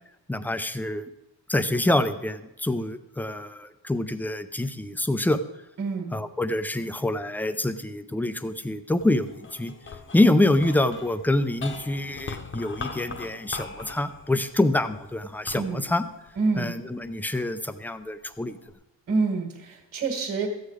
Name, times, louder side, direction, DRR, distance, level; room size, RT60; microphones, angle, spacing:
voice 1, 0.3-1.1 1.5-5.4 6.1-9.7 10.1-16.0 16.6-18.6, left 1 dB, 5° left, 11 dB, 0.4 m, -26 dB
voice 2, 5.8-6.1 15.5-15.9 16.4-16.7 19.1-20.5, right 4 dB, 35° right, 2 dB, 1.8 m, -27 dB
sound 1, 9.0-17.4 18.0-18.7, left 4 dB, 25° left, 0.9 m, -41 dB
14.0 x 8.6 x 4.8 m, 0.93 s
cardioid pair, 145°, 44 cm